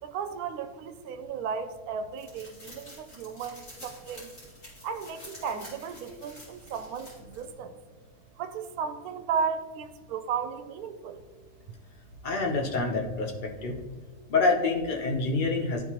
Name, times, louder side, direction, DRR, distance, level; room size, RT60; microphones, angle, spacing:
voice 1, 0.0-4.3 4.8-7.8 8.4-11.2, right 6 dB, 75° right, 9 dB, 1.0 m, -34 dB
sound 1, 2.2-7.5, left 1 dB, 55° left, 2.7 m, -49 dB
voice 2, 12.2-13.3 13.6-13.8 14.3-15.8, left 3 dB, 40° left, 1 dB, 0.8 m, -26 dB
11.5 x 3.8 x 2.9 m, 1.3 s
omnidirectional pair, 1.7 m